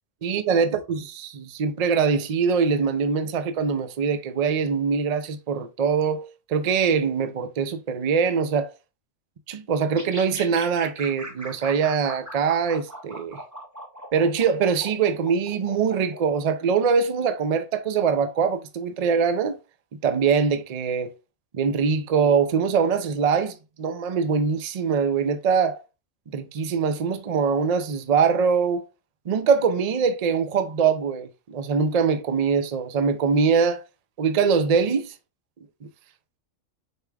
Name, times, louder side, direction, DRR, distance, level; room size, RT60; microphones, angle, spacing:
voice 1, 0.2-8.7 9.5-13.4 14.1-19.6 19.9-21.1 21.5-25.8 26.3-28.8 29.3-33.8 34.2-35.1 35.8-35.9, right 6 dB, 50° right, 0.5 m, -23 dB
sound 1, 10.0-16.2, right 1 dB, 15° right, 0.8 m, -39 dB
4.7 x 4.4 x 2.3 m
omnidirectional pair, 1.3 m